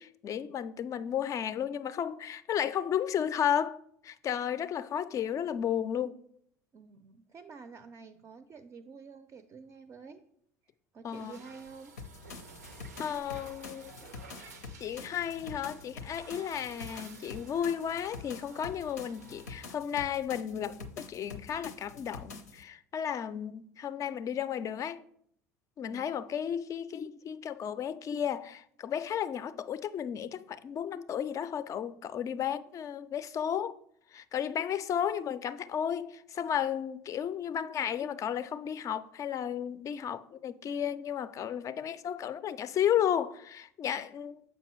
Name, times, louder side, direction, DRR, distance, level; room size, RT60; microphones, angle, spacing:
voice 1, 0.0-3.8 4.0-6.1 11.0-11.4 13.0-13.9 14.4-14.5 14.8-25.0 25.8-33.7 34.1-44.4, left 9 dB, 40° left, 0.4 m, -33 dB
voice 2, 6.7-10.2 10.9-11.9 25.8-26.1, right 5 dB, 35° right, 0.4 m, -49 dB
sound 1, 11.1-19.7, right 4 dB, 90° right, 0.5 m, -53 dB
sound 2, 12.0-22.6, left 4 dB, 85° left, 0.6 m, -47 dB
7.1 x 5.3 x 3.0 m
hypercardioid pair, 70°, 9 cm